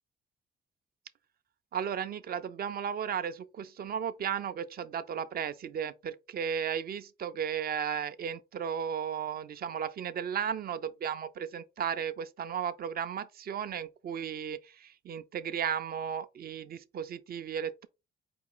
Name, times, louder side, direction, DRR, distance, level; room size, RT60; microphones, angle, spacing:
voice 1, 1.7-17.9, right 8 dB, 50° right, 0.5 m, -35 dB
4.8 x 2.4 x 3.8 m
cardioid pair, 90°, 20 cm